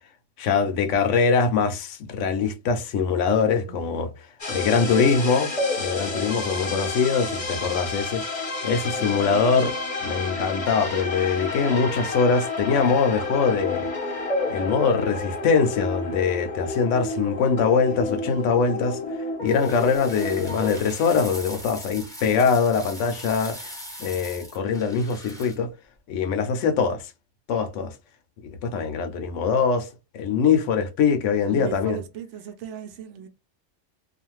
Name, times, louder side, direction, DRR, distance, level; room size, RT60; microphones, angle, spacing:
voice 1, 0.4-4.1 4.5-5.5 5.8-9.8 10.0-13.9 14.5-19.0 19.4-23.7 24.0-25.7 26.1-27.0 27.5-27.9 28.6-29.9 30.1-32.0, left 5 dB, 75° left, 0.9 m, -23 dB
voice 2, 3.7-4.0 6.3-6.9 7.4-7.7 9.0-9.7 31.5-33.3, right 9 dB, 70° right, 0.9 m, -39 dB
sound 1, 4.4-20.8, left 3 dB, 30° left, 0.8 m, -30 dB
sound 2, 19.5-25.6, equal, 5° left, 0.9 m, -40 dB
2.4 x 2.4 x 3.0 m
omnidirectional pair, 1.3 m